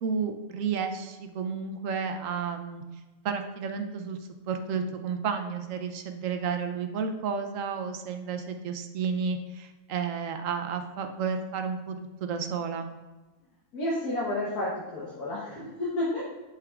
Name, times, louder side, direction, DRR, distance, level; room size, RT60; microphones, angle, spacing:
voice 1, 0.0-2.8 3.2-4.2 4.5-13.0, right 6 dB, 65° right, 6 dB, 0.9 m, -32 dB
voice 2, 13.7-16.2, left 1 dB, 80° left, -7 dB, 1.7 m, -31 dB
8.0 x 5.8 x 2.4 m, 1.2 s
omnidirectional pair, 1.6 m